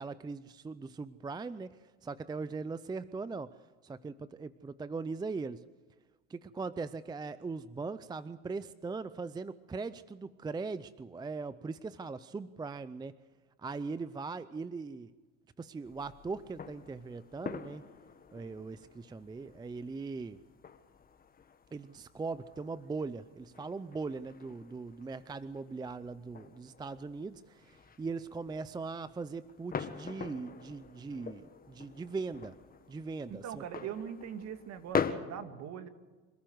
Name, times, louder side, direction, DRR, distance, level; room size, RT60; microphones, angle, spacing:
voice 1, 0.0-3.5 3.8-5.6 6.3-13.1 13.6-15.1 15.6-17.8 18.3-20.4 21.7-32.6 32.9-33.6, right 4 dB, 10° right, 15 dB, 0.5 m, -40 dB
sound 1, 15.8-35.1, left 6 dB, 25° left, 1.7 m, -43 dB
voice 2, 33.3-35.9, right 8 dB, 50° right, 8 dB, 2.2 m, -41 dB
26.5 x 14.0 x 8.0 m, 1.3 s
supercardioid pair, 95°, 35 cm